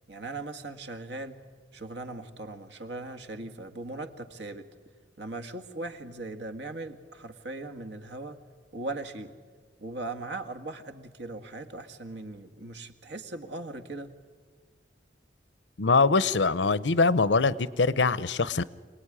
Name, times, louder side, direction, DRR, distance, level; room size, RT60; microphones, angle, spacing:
voice 1, 0.1-1.4 1.7-4.7 5.2-8.4 8.7-9.3 9.8-14.1, right 2 dB, 70° right, 8 dB, 1.8 m, -39 dB
voice 2, 15.8-18.6, left 4 dB, 80° left, 18 dB, 0.8 m, -23 dB
27.0 x 19.0 x 10.0 m, 1.5 s
head